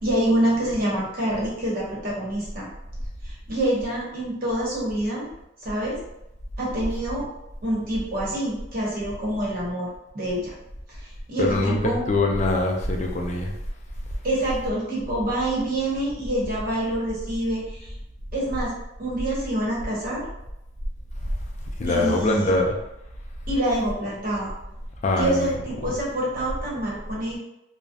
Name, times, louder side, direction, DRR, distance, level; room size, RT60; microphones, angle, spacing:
voice 1, 0.0-2.7 3.2-5.3 5.6-6.0 6.6-7.3 7.6-9.9 10.1-10.5 10.9-12.0 14.2-17.9 18.3-18.7 19.0-20.2 21.9-22.6 23.5-24.5 25.2-27.4, right 1 dB, 50° right, -5 dB, 0.8 m, -26 dB
voice 2, 11.4-13.5 21.8-22.8 25.0-25.5, left 2 dB, 40° left, 0 dB, 0.4 m, -23 dB
2.3 x 2.0 x 2.6 m, 0.86 s
head